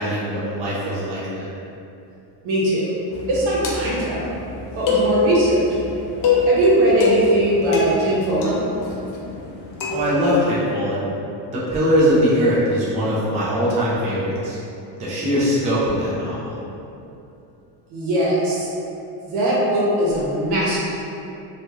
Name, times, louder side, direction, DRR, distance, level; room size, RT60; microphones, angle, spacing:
voice 1, 0.0-1.5 9.9-11.0 11.5-14.6 15.0-16.6, equal, 15° right, -9 dB, 0.3 m, -21 dB
voice 2, 2.4-2.9 3.3-4.4 4.8-5.6 6.4-8.5 17.9-18.7 19.2-20.8, right 1 dB, 80° right, -6 dB, 1.0 m, -20 dB
sound 1, 3.1-10.2, left 2 dB, 45° left, 0.5 m, -24 dB
2.5 x 2.3 x 3.0 m, 2.8 s
cardioid pair, 150°, 48 cm